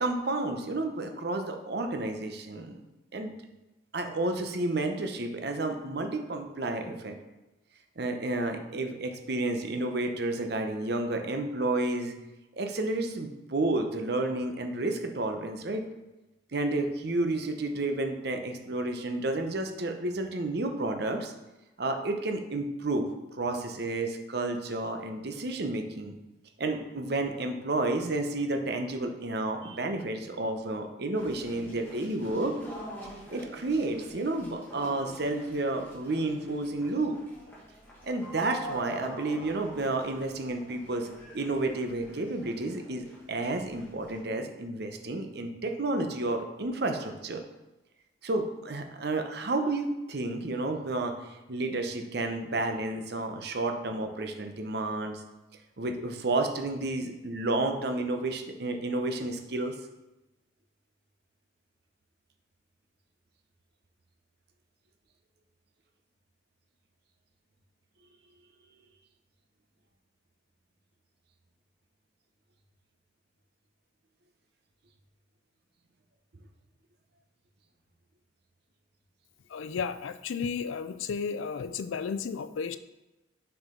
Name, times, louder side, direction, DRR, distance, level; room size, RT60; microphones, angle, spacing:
voice 1, 0.0-2.8 3.1-3.4 3.9-7.2 8.0-12.1 12.5-15.9 16.5-21.3 21.8-26.1 26.6-32.6 33.3-37.2 38.0-41.1 41.3-47.4 48.2-55.2 55.8-59.8, right 2 dB, 55° right, 5 dB, 0.7 m, -31 dB
sound 1, 31.2-44.2, right 1 dB, 10° left, 1.7 m, -46 dB
voice 2, 79.5-82.8, left 6 dB, 85° left, 12 dB, 0.4 m, -33 dB
6.3 x 4.8 x 3.8 m, 1.0 s
head